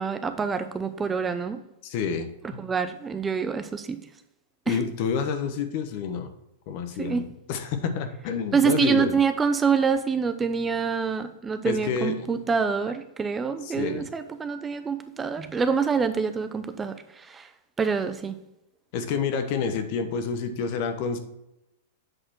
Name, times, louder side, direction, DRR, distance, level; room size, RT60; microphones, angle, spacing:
voice 1, 0.0-1.6 2.6-4.0 4.7-4.8 7.0-7.3 8.5-17.5 17.8-18.4, right 5 dB, 15° right, 10 dB, 0.5 m, -26 dB
voice 2, 1.8-2.7 4.7-6.3 6.7-9.1 11.6-12.3 13.6-14.0 18.9-21.2, left 6 dB, 50° left, 8 dB, 1.0 m, -29 dB
7.8 x 4.2 x 4.4 m, 0.88 s
hypercardioid pair, 120°, 0 cm